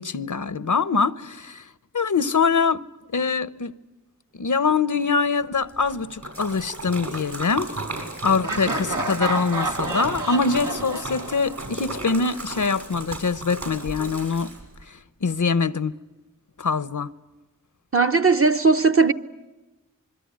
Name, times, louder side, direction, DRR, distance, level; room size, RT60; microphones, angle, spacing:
voice 1, 0.0-1.7 1.9-2.8 3.1-3.7 4.3-7.7 7.9-14.5 14.9-15.9 16.6-17.1, left 5 dB, 70° left, 0.9 m, -24 dB
Splash splatter, 5.7-14.8, right 2 dB, 60° right, 7.0 m, -34 dB
Laughter, 8.4-12.3, right 2 dB, 80° right, 2.0 m, -30 dB
voice 2, 17.9-19.1, right 4 dB, 45° right, 1.2 m, -18 dB
26.5 x 22.5 x 9.6 m
wide cardioid pair, 50°, 31 cm